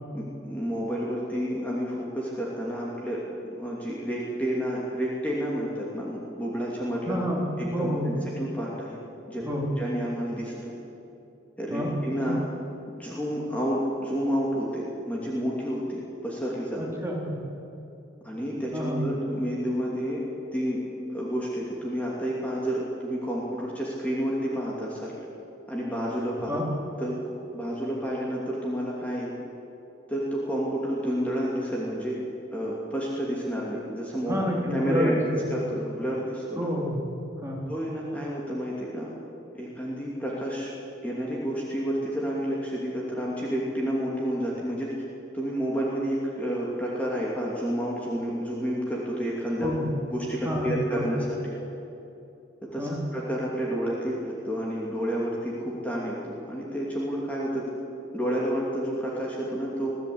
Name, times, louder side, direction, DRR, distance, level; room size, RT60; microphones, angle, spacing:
voice 1, 0.1-3.3 3.6-7.2 7.6-9.0 9.3-9.5 9.8-10.7 11.6-12.4 12.9-16.8 18.2-20.2 20.5-25.1 25.7-26.6 27.0-27.1 27.5-29.3 30.1-32.2 32.5-34.4 34.7-35.2 35.5-36.7 37.7-39.1 39.5-40.7 41.0-44.9 45.3-49.7 50.1-51.4 52.7-57.7 58.1-60.0, equal, 10° left, -5 dB, 2.8 m, -30 dB
voice 2, 7.1-8.1 9.4-9.7 11.7-12.4 16.8-17.3 18.7-19.0 26.5-26.7 34.3-35.2 36.6-37.0 37.4-37.6 49.6-49.9 50.4-51.0 52.8-53.0, equal, 15° right, -2 dB, 3.7 m, -29 dB
22.0 x 15.0 x 8.7 m, 2.8 s
head